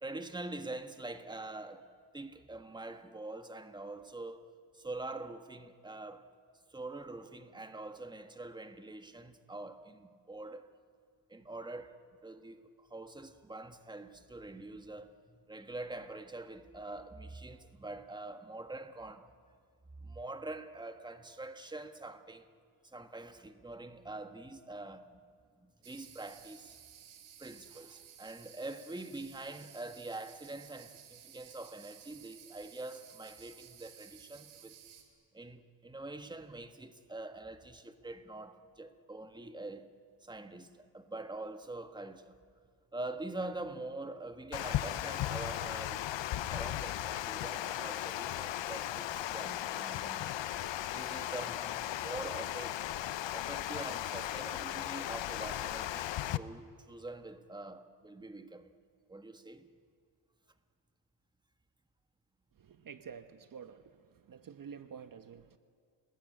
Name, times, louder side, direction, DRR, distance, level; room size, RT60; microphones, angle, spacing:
voice 1, 0.0-4.5 4.7-6.2 6.7-10.7 11.3-19.3 20.0-22.5 22.8-25.2 25.6-26.7 27.4-34.8 35.3-39.9 40.2-42.3 42.9-46.1 46.4-50.4 50.9-52.8 53.3-58.7 59.1-59.7, right 2 dB, 10° right, 1.5 m, -45 dB
sound 1, 25.8-35.0, right 9 dB, 80° right, 3.8 m, -55 dB
Water, 44.5-56.4, left 13 dB, 65° left, 0.9 m, -36 dB
voice 2, 62.6-64.0 64.3-65.6, right 7 dB, 45° right, 1.1 m, -49 dB
30.0 x 20.5 x 8.9 m
cardioid pair, 100°, 48 cm